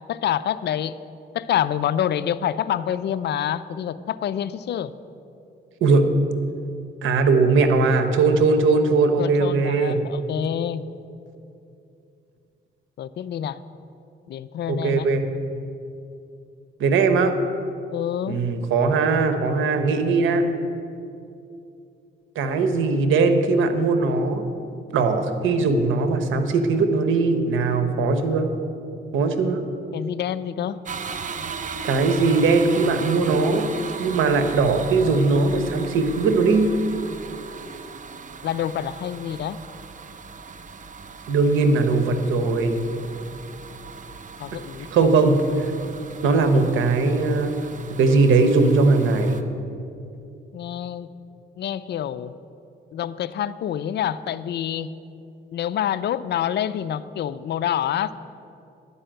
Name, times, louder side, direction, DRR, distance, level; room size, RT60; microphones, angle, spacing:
voice 1, 0.1-1.0 1.3-4.9 9.2-10.8 13.0-13.6 14.3-15.1 15.5-15.7 17.9-18.4 29.9-30.8 38.4-39.6 44.4-45.1 50.5-51.1 51.6-52.3 52.9-54.9 55.5-58.1, left 10 dB, 60° left, 15 dB, 0.5 m, -27 dB
voice 2, 7.0-10.0 14.7-15.3 16.8-17.3 18.3-20.4 22.3-24.4 24.9-28.5 29.1-29.6 31.8-33.7 34.0-36.7 41.3-42.8 44.9-45.7 46.2-47.5 48.0-49.4, right 3 dB, 80° right, 8 dB, 1.1 m, -20 dB
sound 1, 30.9-49.4, right 5 dB, 40° right, 0.7 m, -37 dB
11.5 x 5.6 x 8.9 m, 2.6 s
cardioid pair, 90°, 20 cm